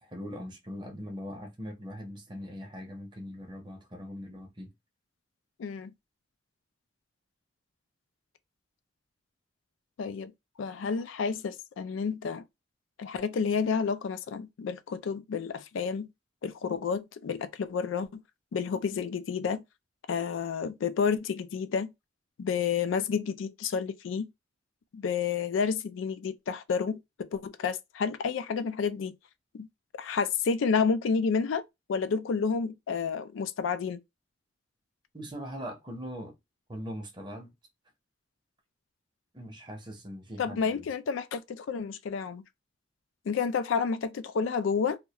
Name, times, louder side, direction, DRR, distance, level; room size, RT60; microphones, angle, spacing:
voice 1, 0.0-4.7 35.1-36.4 36.7-37.5 39.3-40.9, equal, 25° right, 0.6 m, -41 dB
voice 2, 5.6-5.9 10.0-10.3 10.6-12.4 13.0-16.1 16.4-18.2 18.5-19.6 20.1-21.9 22.4-24.3 24.9-29.2 29.5-29.7 30.0-31.6 31.9-34.0 40.4-42.4 43.3-45.0, left 5 dB, 85° left, 0.4 m, -30 dB
2.3 x 2.1 x 2.7 m
head